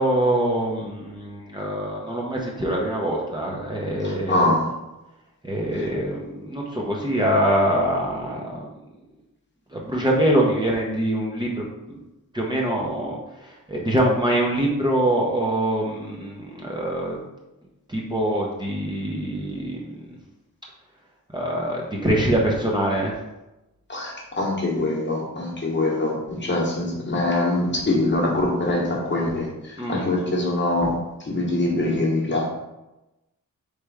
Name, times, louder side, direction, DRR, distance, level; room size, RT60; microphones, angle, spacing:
voice 1, 0.0-4.5 5.4-8.7 9.7-12.0 12.3-17.2 17.9-20.2 21.3-23.1 29.8-30.1, right 1 dB, 15° right, -3 dB, 0.7 m, -24 dB
voice 2, 4.0-4.7 23.9-30.9 31.2-32.5, left 2 dB, 35° left, -2 dB, 1.1 m, -23 dB
3.4 x 3.2 x 4.7 m, 0.99 s
wide cardioid pair, 110°, 34 cm